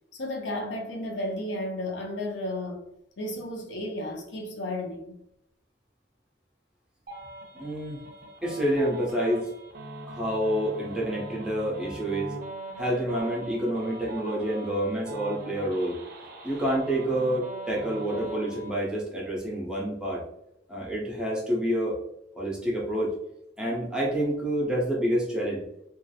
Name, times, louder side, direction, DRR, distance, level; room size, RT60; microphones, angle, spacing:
voice 1, 0.1-2.8 3.2-5.2, left 1 dB, 75° left, 0.5 m, -33 dB
sound 1, 7.1-18.7, right 2 dB, 55° right, 0.5 m, -41 dB
voice 2, 7.5-8.0 8.4-9.5 10.1-12.3 12.8-16.0 16.4-20.2 20.7-22.0 22.4-23.1 23.6-25.6, right 1 dB, 5° right, 0.6 m, -28 dB
2.3 x 2.0 x 2.7 m
head